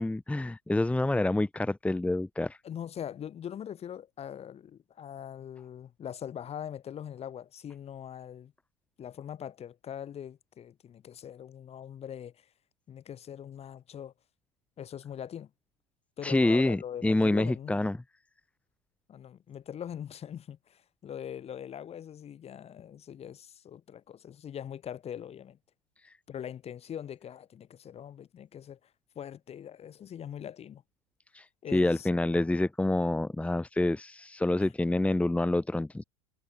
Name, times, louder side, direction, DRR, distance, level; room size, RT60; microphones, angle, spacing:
voice 1, 0.0-2.6 16.2-18.0 31.3-31.5 31.7-36.0, left 2 dB, 5° left, 1.7 m, -27 dB
voice 2, 2.6-8.5 9.0-12.5 12.9-14.1 14.8-15.5 16.2-17.8 19.1-25.6 26.3-28.8 29.1-30.8 31.6-32.1 34.6-34.7, left 9 dB, 35° left, 4.5 m, -42 dB
hypercardioid pair, 85°, 17 cm